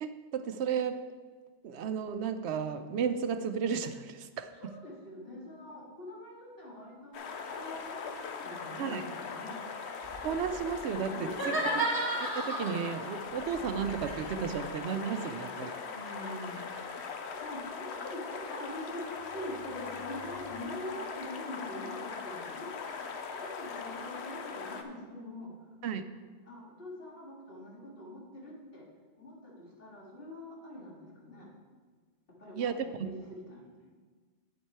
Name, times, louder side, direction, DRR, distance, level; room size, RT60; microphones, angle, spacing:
voice 1, 0.0-1.0 1.6-4.5 8.8-9.0 10.2-11.8 12.3-15.7 25.8-26.0 32.6-32.7 33.0-33.1, right 7 dB, 75° right, 10 dB, 0.8 m, -33 dB
voice 2, 4.5-8.1 8.4-9.5 11.1-11.8 15.8-16.7 17.0-22.9 23.4-25.5 26.4-28.9 29.2-31.5 32.4-33.7, left 1 dB, 55° left, -4 dB, 2.4 m, -44 dB
sound 1, 7.1-24.8, left 5 dB, 75° left, 1.0 m, -40 dB
sound 2, 10.0-11.0 13.2-14.8 19.0-20.6, equal, 35° left, 2.0 m, -53 dB
sound 3, 11.3-13.0 13.9-16.9, right 1 dB, 20° right, 1.6 m, -33 dB
8.6 x 7.8 x 4.4 m, 1.5 s
omnidirectional pair, 1.1 m